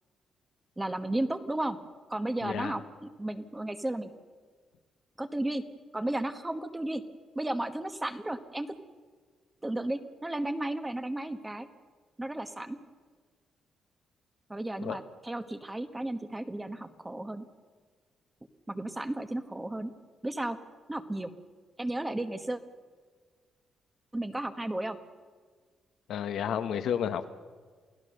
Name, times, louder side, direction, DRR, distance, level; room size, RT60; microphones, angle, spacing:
voice 1, 0.8-1.8 2.1-4.1 5.2-5.6 5.9-7.0 7.3-8.7 9.6-11.7 12.2-12.8 14.5-17.4 18.7-19.9 20.2-20.6 20.9-21.3 21.8-22.6 24.1-25.0, right 1 dB, 10° right, 9 dB, 1.2 m, -33 dB
voice 2, 2.4-2.7 14.8-15.0 26.1-27.3, left 8 dB, 75° left, 9 dB, 1.1 m, -31 dB
28.5 x 17.0 x 6.5 m, 1.5 s
cardioid pair, 130°, 0 cm